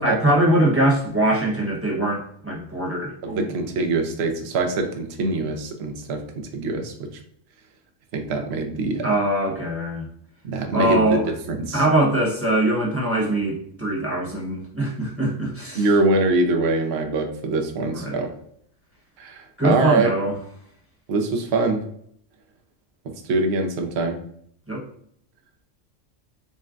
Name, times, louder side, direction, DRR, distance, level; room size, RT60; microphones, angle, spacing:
voice 1, 0.0-3.7 9.0-10.1 10.7-11.3 11.7-15.9 17.9-18.2 19.6-20.4 24.7-24.8, right 1 dB, 10° right, -4 dB, 1.1 m, -22 dB
voice 2, 3.2-7.1 8.1-9.1 10.4-11.2 11.5-11.8 15.7-18.3 19.2-20.1 21.1-21.8 23.0-24.2, right 3 dB, 60° right, 4 dB, 0.9 m, -23 dB
6.2 x 2.2 x 2.5 m, 0.66 s
omnidirectional pair, 1.3 m